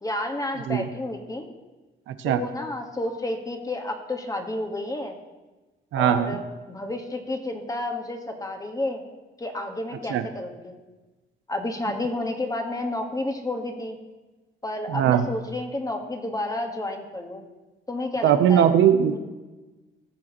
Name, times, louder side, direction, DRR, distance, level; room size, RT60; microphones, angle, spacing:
voice 1, 0.0-1.5 2.2-5.2 5.9-9.0 9.4-10.8 11.5-14.0 14.6-17.4 17.9-18.7 19.1-19.2, left 1 dB, 20° left, 4 dB, 1.4 m, -31 dB
voice 2, 2.1-2.4 5.9-6.4 10.1-10.2 14.9-15.3 18.2-19.2, right 9 dB, 85° right, 10 dB, 0.7 m, -20 dB
17.5 x 6.3 x 3.0 m, 1.2 s
cardioid pair, 90°, 20 cm